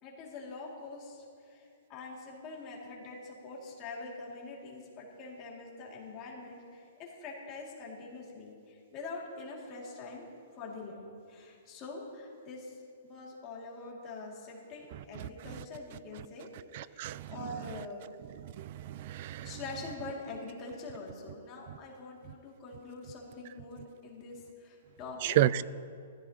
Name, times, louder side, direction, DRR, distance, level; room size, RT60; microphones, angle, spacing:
voice 1, 0.0-10.3 10.5-16.5 16.8-18.1 19.4-25.4, left 3 dB, 20° left, -3 dB, 2.4 m, -44 dB
voice 2, 16.7-17.3 18.4-19.5 25.2-25.6, right 13 dB, 35° right, 19 dB, 0.3 m, -30 dB
20.5 x 14.5 x 2.9 m, 2.3 s
hypercardioid pair, 175°, 0 cm